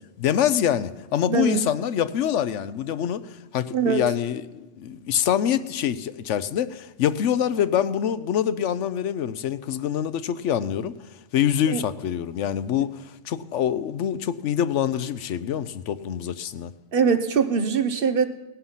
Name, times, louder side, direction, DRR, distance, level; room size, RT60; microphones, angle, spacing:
voice 1, 0.2-10.9 11.3-16.7, left 9 dB, 80° left, 14 dB, 1.0 m, -25 dB
voice 2, 1.3-1.6 3.7-4.0 11.7-11.8 16.9-18.3, right 6 dB, 55° right, 9 dB, 1.0 m, -22 dB
18.0 x 11.5 x 5.7 m, 1.1 s
omnidirectional pair, 1.2 m